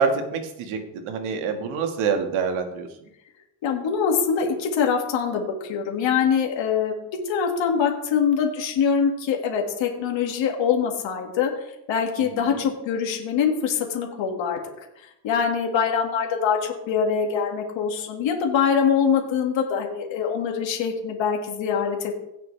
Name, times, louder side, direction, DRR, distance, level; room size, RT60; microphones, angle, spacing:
voice 1, 0.0-2.9 12.2-12.5, right 5 dB, 75° right, 5 dB, 1.9 m, -26 dB
voice 2, 3.6-6.9 7.3-14.6 15.0-22.1, left 7 dB, 65° left, 2 dB, 2.2 m, -24 dB
17.0 x 6.6 x 3.4 m, 0.83 s
cardioid pair, 105°, 49 cm